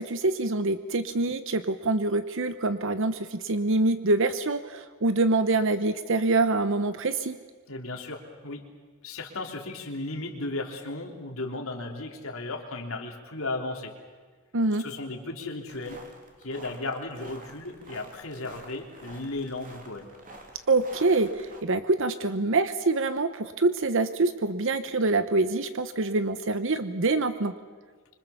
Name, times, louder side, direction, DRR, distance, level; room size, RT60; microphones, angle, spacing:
voice 1, 0.0-7.4 14.5-14.8 20.7-27.5, right 3 dB, 65° right, 11 dB, 1.0 m, -25 dB
voice 2, 7.7-8.6 9.0-14.0 14.8-16.0 16.4-20.1, left 2 dB, 75° left, 2 dB, 3.5 m, -35 dB
sound 1, 15.7-21.6, right 2 dB, 40° right, 3.6 m, -49 dB
25.5 x 25.5 x 7.2 m, 1.5 s
head